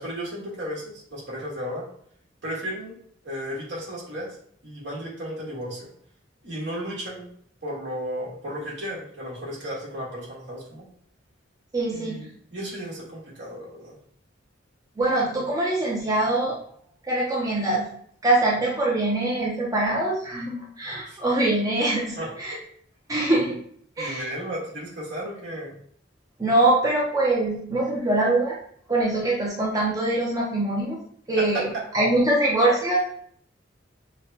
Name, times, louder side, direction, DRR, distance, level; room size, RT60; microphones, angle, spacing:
voice 1, 0.0-1.9 2.4-2.9 3.2-4.4 4.6-5.9 6.4-7.3 7.6-10.9 11.9-14.0 21.1-21.2 22.2-22.3 24.0-25.8 31.4-31.6, equal, 65° right, -5 dB, 1.7 m, -34 dB
voice 2, 11.7-12.3 15.0-16.6 17.1-17.9 18.2-22.5 23.1-23.6 24.0-24.3 26.4-28.6 28.9-31.0 31.3-33.0, right 2 dB, 20° right, -5 dB, 0.7 m, -23 dB
6.2 x 2.3 x 2.8 m, 0.62 s
head